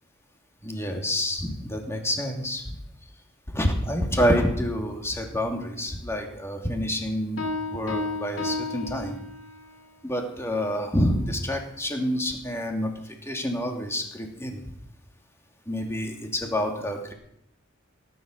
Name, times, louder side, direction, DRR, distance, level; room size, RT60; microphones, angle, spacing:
voice 1, 0.6-2.6 3.5-7.4 7.7-9.2 10.0-12.9 13.3-14.6 15.7-17.1, equal, 15° left, 2 dB, 2.6 m, -27 dB
Piano, 7.4-9.7, left 2 dB, 90° left, 2.9 m, -32 dB
18.0 x 11.0 x 6.6 m, 0.76 s
head